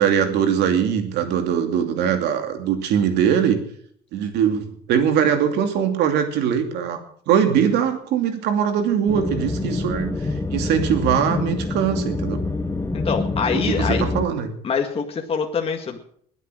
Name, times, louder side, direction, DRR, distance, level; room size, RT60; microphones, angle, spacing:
voice 1, 0.0-3.6 4.1-7.0 7.3-12.4 13.5-14.5, right 8 dB, 85° right, 6 dB, 2.7 m, -21 dB
sound 1, 9.1-14.3, left 2 dB, 15° left, 1.3 m, -26 dB
voice 2, 12.9-14.0 14.6-16.0, left 6 dB, 35° left, 3 dB, 1.9 m, -24 dB
21.0 x 8.3 x 6.3 m, 0.62 s
cardioid pair, 110°, 17 cm